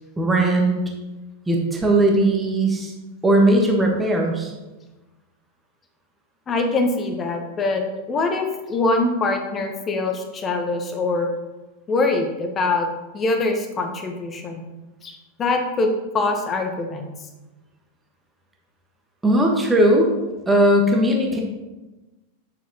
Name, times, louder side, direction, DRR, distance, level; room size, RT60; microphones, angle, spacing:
voice 1, 0.2-0.7 1.5-2.9 3.2-4.5 19.2-20.1 20.5-21.4, right 1 dB, 10° right, 0 dB, 1.4 m, -18 dB
voice 2, 6.5-7.8 8.1-11.3 11.9-12.9 13.1-14.7 15.0-17.1, left 3 dB, 25° left, 4 dB, 1.1 m, -23 dB
9.1 x 7.3 x 3.0 m, 1.1 s
figure-of-eight pair, 90°, 0 cm